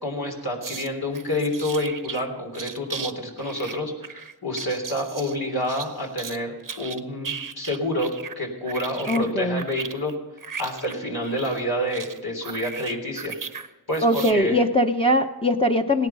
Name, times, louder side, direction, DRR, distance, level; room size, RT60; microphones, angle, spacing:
voice 1, 0.0-10.1 10.6-13.6 13.9-14.0 14.3-14.6, left 1 dB, 70° left, 0 dB, 3.4 m, -28 dB
sound 1, 0.6-2.2 2.5-3.1 3.4-6.4 6.6-8.4 8.7-13.7 13.9-14.3, right 6 dB, 55° right, 0.9 m, -36 dB
voice 2, 9.1-9.7 14.0-16.1, equal, 15° left, 3 dB, 1.0 m, -21 dB
17.0 x 10.5 x 5.5 m, 1.1 s
cardioid pair, 45°, 38 cm